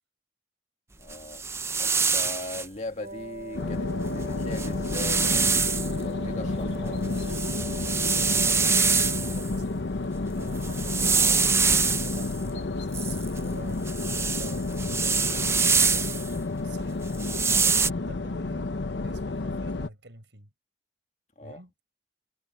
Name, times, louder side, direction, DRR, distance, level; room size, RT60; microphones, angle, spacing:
voice 1, 1.0-1.4 1.8-7.4 21.4-21.6, left 2 dB, 40° left, 2.0 m, -40 dB
sound 1, 1.1-2.7 4.0-4.1 4.5-5.9 6.5-9.5 10.4-12.3 12.9-16.3 17.1-17.9, right 5 dB, 15° right, 0.5 m, -25 dB
Wind instrument woodwind instrument, 3.0-9.8, right 1 dB, 55° right, 4.8 m, -41 dB
sound 2, 3.5-19.9, left 2 dB, 75° left, 0.8 m, -31 dB
voice 2, 8.1-9.9 10.3-11.4 11.8-16.1 16.6-18.7 19.0-20.5 21.4-21.7, right 2 dB, 80° right, 5.9 m, -46 dB
head